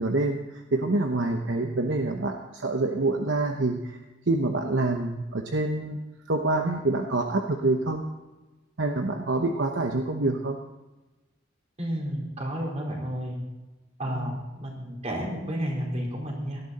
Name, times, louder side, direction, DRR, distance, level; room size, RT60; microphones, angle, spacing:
voice 1, 0.0-4.0 4.3-6.0 6.3-8.0 8.8-10.6 14.1-14.4, right 2 dB, 70° right, 4 dB, 1.0 m, -26 dB
voice 2, 11.8-13.4 14.0-16.6, equal, 35° right, -2 dB, 4.6 m, -31 dB
17.5 x 12.5 x 4.2 m, 1.1 s
head